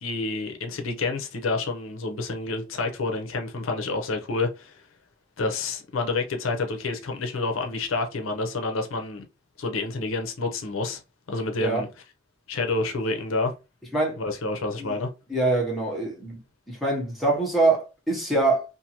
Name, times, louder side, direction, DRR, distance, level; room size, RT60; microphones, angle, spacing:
voice 1, 0.0-4.7 5.4-9.2 9.6-11.0 11.3-11.9 12.5-13.5 14.2-15.1, left 3 dB, 85° left, 0.6 m, -28 dB
voice 2, 15.3-16.4 16.7-18.6, right 2 dB, ahead, 0.9 m, -24 dB
2.6 x 2.5 x 2.8 m
head